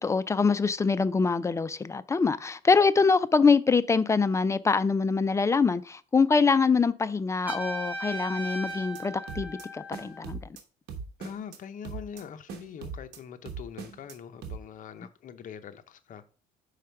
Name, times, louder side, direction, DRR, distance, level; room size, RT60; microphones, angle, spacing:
voice 1, 0.0-10.4, left 4 dB, 15° left, 0.3 m, -24 dB
Trumpet, 7.5-10.3, right 1 dB, 10° right, 1.4 m, -37 dB
sound 1, 8.7-9.0 9.3-9.7 9.9-10.6 10.9-11.6 11.8-12.2 12.5-13.2 13.5-14.2 14.4-14.6, right 5 dB, 75° right, 1.1 m, -40 dB
voice 2, 11.2-16.2, left 8 dB, 50° left, 0.7 m, -43 dB
4.9 x 4.3 x 5.7 m
cardioid pair, 110°, 17 cm